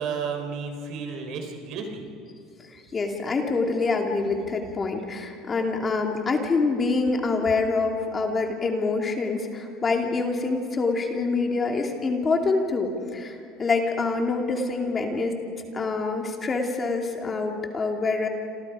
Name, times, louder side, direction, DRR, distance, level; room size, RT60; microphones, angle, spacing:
voice 1, 0.0-2.0, right 5 dB, 60° right, 5 dB, 4.0 m, -32 dB
voice 2, 2.6-15.4 15.7-18.3, left 3 dB, 25° left, 2 dB, 2.7 m, -26 dB
28.5 x 27.5 x 5.0 m, 2.5 s
supercardioid pair, 120°, 0 cm